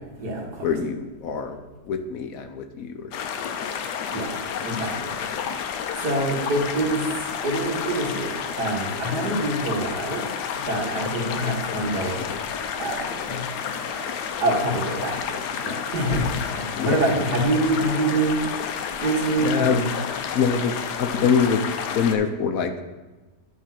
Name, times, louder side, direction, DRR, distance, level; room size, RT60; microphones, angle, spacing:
voice 1, 0.6-1.6 1.9-3.1 16.8-17.0 19.4-19.8 20.3-21.6 21.9-22.8, left 6 dB, 65° left, 7 dB, 1.0 m, -24 dB
sound 1, 3.1-22.2, left 7 dB, 90° left, 1.2 m, -30 dB
voice 2, 4.6-5.2 6.0-7.1 7.4-8.3 8.6-10.2 10.7-12.5 12.8-13.4 13.9-14.1 14.4-15.4 15.6-18.4 19.0-19.9, right 2 dB, 75° right, -1 dB, 2.2 m, -25 dB
10.5 x 3.8 x 5.8 m, 1.2 s
omnidirectional pair, 1.7 m